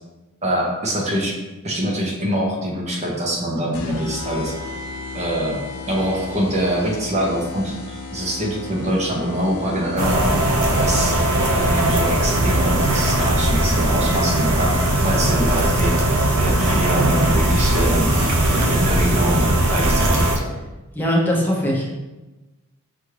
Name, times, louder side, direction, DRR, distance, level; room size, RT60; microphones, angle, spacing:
voice 1, 0.4-1.4 1.6-4.5 5.1-5.6 5.9-11.2 11.5-20.5, right 1 dB, 30° right, -1 dB, 0.7 m, -24 dB
sound 1, 3.7-15.1, left 3 dB, 80° left, 0.5 m, -34 dB
sound 2, 10.0-20.4, right 1 dB, 80° right, 0.6 m, -19 dB
voice 2, 20.9-21.9, equal, 10° left, -3 dB, 0.6 m, -20 dB
5.6 x 2.5 x 3.1 m, 1.1 s
head